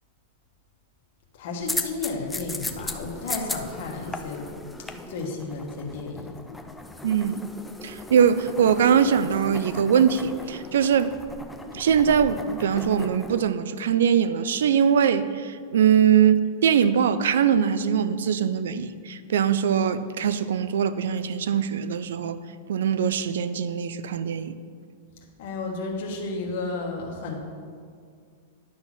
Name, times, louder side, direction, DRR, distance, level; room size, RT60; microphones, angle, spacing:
voice 1, 1.3-4.5 4.9-6.3 25.4-27.4, left 3 dB, 45° left, 0 dB, 1.3 m, -32 dB
sound 1, 1.6-13.4, left 2 dB, 5° left, 0.3 m, -37 dB
voice 2, 7.0-7.5 7.8-11.1 11.7-22.4 22.7-24.5, right 8 dB, 85° right, 13 dB, 0.4 m, -22 dB
11.0 x 4.1 x 6.0 m, 2.1 s
supercardioid pair, 180°, 0 cm